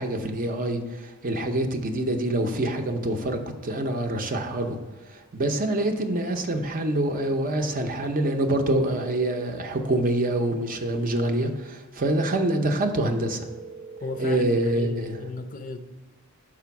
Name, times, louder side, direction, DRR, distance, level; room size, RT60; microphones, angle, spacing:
voice 1, 0.0-4.8 5.1-13.5 14.2-15.2, right 1 dB, 40° right, 5 dB, 0.7 m, -26 dB
sound 1, 8.9-9.5 13.4-15.3, right 4 dB, ahead, 0.8 m, -42 dB
voice 2, 14.0-15.8, left 3 dB, 35° left, 8 dB, 0.5 m, -36 dB
6.0 x 5.0 x 5.8 m, 1.3 s
head